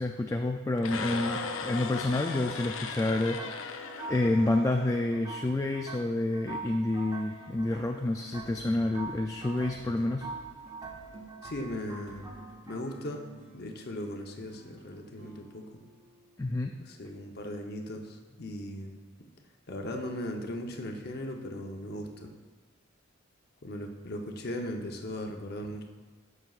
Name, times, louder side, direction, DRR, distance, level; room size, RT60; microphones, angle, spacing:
voice 1, 0.0-10.3 16.4-16.7, left 2 dB, 15° left, 3 dB, 0.3 m, -29 dB
sound 1, 0.8-4.9, left 5 dB, 80° left, 0.6 m, -37 dB
sound 2, 3.4-13.3, right 4 dB, 20° right, 0.7 m, -44 dB
sound 3, 8.2-17.6, right 2 dB, 60° right, 1.8 m, -53 dB
voice 2, 11.4-12.3 12.7-13.2 13.5-15.8 16.8-19.0 19.7-22.3 23.6-25.8, left 1 dB, 50° left, 3 dB, 0.8 m, -38 dB
13.0 x 6.2 x 2.4 m, 1.3 s
head